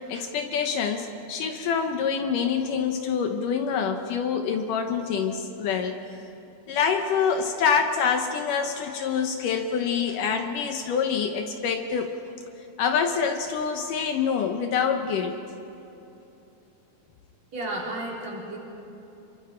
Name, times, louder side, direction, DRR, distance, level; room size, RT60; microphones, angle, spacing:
voice 1, 0.0-6.0 6.7-12.1 12.8-15.3, left 6 dB, 70° left, 5 dB, 2.3 m, -26 dB
voice 2, 17.5-18.6, right 1 dB, 50° right, -3 dB, 4.8 m, -32 dB
28.0 x 23.5 x 4.5 m, 3.0 s
omnidirectional pair, 4.2 m